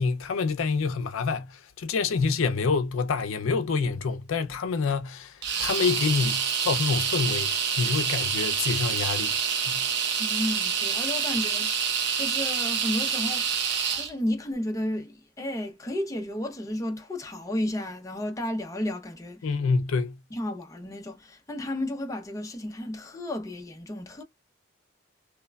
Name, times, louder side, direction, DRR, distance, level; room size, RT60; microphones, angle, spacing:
voice 1, 0.0-9.3 9.7-9.9 19.4-20.2, left 4 dB, 80° left, 0.4 m, -27 dB
sound 1, 5.4-14.1, right 7 dB, 55° right, 0.7 m, -27 dB
voice 2, 10.2-11.9 12.2-13.7 13.9-19.6 20.3-24.2, left 1 dB, 15° left, 0.4 m, -32 dB
3.1 x 2.1 x 2.2 m
head